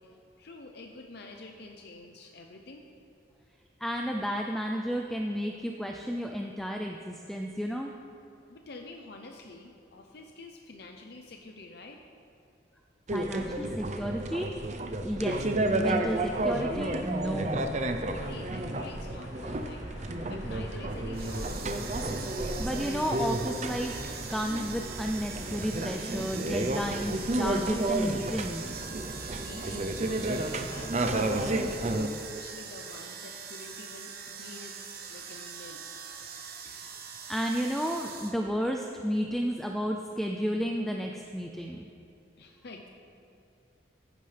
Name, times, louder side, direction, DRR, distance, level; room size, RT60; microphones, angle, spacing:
voice 1, 0.0-2.8 8.5-12.0 18.2-21.6 29.0-35.8 42.4-42.9, left 2 dB, 60° left, 3 dB, 0.7 m, -48 dB
voice 2, 3.8-7.9 13.1-14.5 15.0-15.4 15.7-17.8 22.6-23.9 24.3-28.6 36.7-36.9 37.3-41.9, equal, ahead, 2 dB, 0.4 m, -32 dB
sound 1, 13.1-32.1, right 1 dB, 40° right, 0.6 m, -31 dB
sound 2, 15.8-27.6, left 1 dB, 85° left, 1.9 m, -54 dB
sound 3, 21.1-38.3, right 6 dB, 55° right, 1.0 m, -43 dB
14.5 x 11.0 x 3.4 m, 2.7 s
head